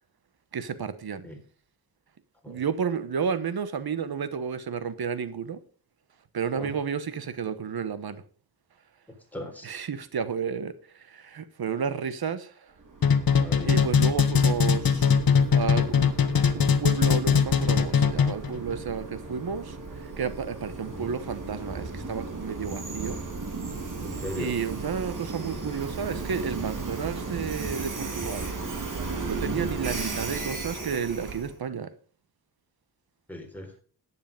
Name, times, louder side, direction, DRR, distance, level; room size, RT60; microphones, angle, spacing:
voice 1, 0.5-1.3 2.5-5.6 6.3-8.2 9.6-12.7 13.6-15.1 15.5-16.1 16.4-23.2 24.4-28.5 29.2-31.9, right 6 dB, 70° right, 1.1 m, -32 dB
voice 2, 9.3-9.7 13.4-13.8 21.0-21.1 24.0-24.5 29.4-29.6 33.3-33.7, left 1 dB, 5° left, 4.0 m, -38 dB
Train, 12.8-31.6, right 3 dB, 55° right, 3.1 m, -36 dB
sound 1, 13.0-18.5, left 6 dB, 65° left, 1.3 m, -21 dB
10.5 x 9.9 x 5.3 m
wide cardioid pair, 90°, 38 cm